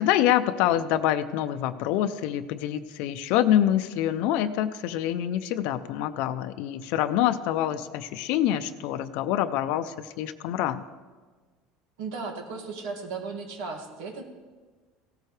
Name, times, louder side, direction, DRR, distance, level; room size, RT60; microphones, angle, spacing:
voice 1, 0.0-10.9, left 11 dB, 65° left, 10 dB, 0.5 m, -26 dB
voice 2, 12.0-14.2, right 4 dB, 85° right, 3 dB, 2.1 m, -35 dB
16.5 x 13.5 x 3.3 m, 1.4 s
cardioid pair, 140°, 2 cm